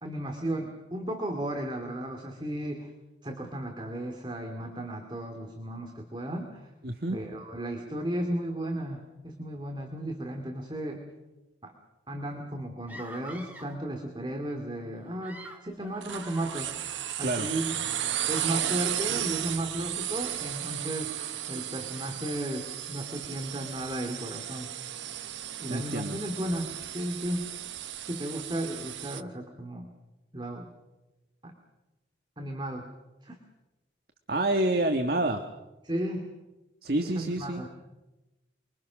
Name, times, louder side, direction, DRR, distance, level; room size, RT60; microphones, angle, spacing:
voice 1, 0.0-2.9 3.2-6.7 7.1-11.0 11.6-11.7 12.1-16.8 17.2-17.7 18.3-21.1 21.5-24.7 25.6-27.5 27.9-29.9 30.3-30.7 31.4-31.5 32.4-32.9 33.2-33.4 35.8-36.3 37.0-37.7, right 1 dB, 25° right, 2 dB, 2.4 m, -34 dB
voice 2, 6.8-7.2 17.2-17.5 25.7-26.2 34.3-35.4 36.8-37.6, right 1 dB, 50° right, 5 dB, 1.5 m, -28 dB
sound 1, 12.9-13.8 15.0-17.4, right 1 dB, 10° right, 2.6 m, -47 dB
sound 2, 16.0-29.2, right 11 dB, 75° right, 1.0 m, -34 dB
29.5 x 22.5 x 6.3 m, 1.0 s
head